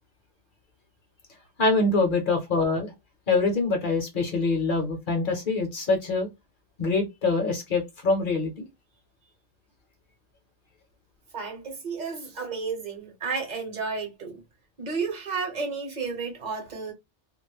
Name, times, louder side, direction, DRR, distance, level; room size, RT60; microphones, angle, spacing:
voice 1, 1.6-2.9 3.3-6.3 6.8-8.7, left 3 dB, 50° left, 0.8 m, -24 dB
voice 2, 11.3-14.4 14.8-16.9, right 4 dB, 40° right, 0.9 m, -32 dB
2.4 x 2.0 x 3.0 m
omnidirectional pair, 1.2 m